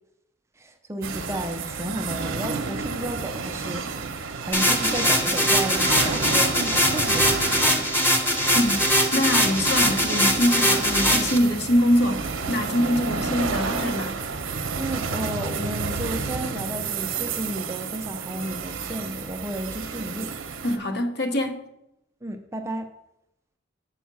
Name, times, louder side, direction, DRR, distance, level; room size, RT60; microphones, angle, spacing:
voice 1, 0.6-7.9 14.7-20.3 22.2-22.9, right 1 dB, 15° right, 0.5 m, -33 dB
sound 1, 1.0-20.8, right 4 dB, 75° right, 0.8 m, -31 dB
sound 2, 4.5-11.4, equal, 10° left, 0.8 m, -21 dB
voice 2, 8.6-8.9 9.1-14.2 20.6-21.6, equal, 50° left, 0.9 m, -24 dB
7.1 x 4.6 x 6.0 m
head